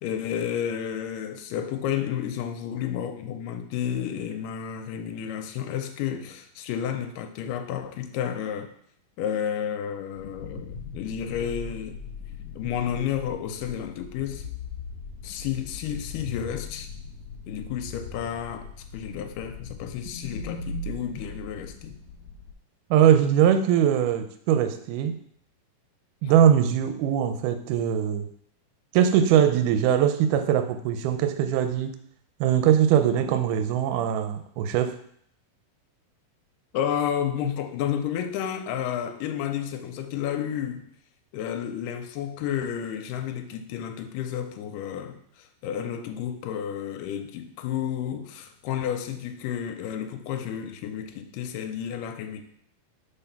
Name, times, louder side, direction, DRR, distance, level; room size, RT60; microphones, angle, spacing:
voice 1, 0.0-8.7 9.2-12.0 12.6-14.5 15.2-16.9 17.5-18.7 18.9-22.0 36.7-40.9 41.3-52.4, left 9 dB, 80° left, 6 dB, 2.1 m, -31 dB
sound 1, 10.2-22.5, left 4 dB, 65° left, 1.8 m, -39 dB
voice 2, 22.9-25.2 26.2-28.3 28.9-32.0 32.4-35.0, right 9 dB, 80° right, 8 dB, 1.9 m, -21 dB
5.5 x 4.1 x 5.8 m, 0.66 s
omnidirectional pair, 4.2 m